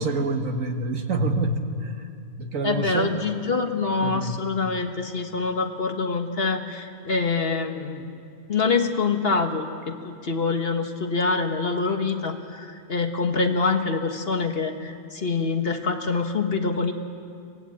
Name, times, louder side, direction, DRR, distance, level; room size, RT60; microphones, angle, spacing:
voice 1, 0.0-1.9 2.4-3.1 4.0-4.4, right 2 dB, 70° right, 5 dB, 1.8 m, -26 dB
voice 2, 2.6-8.2 8.5-16.9, left 4 dB, 45° left, 5 dB, 1.5 m, -25 dB
25.0 x 18.0 x 8.5 m, 2.4 s
omnidirectional pair, 1.4 m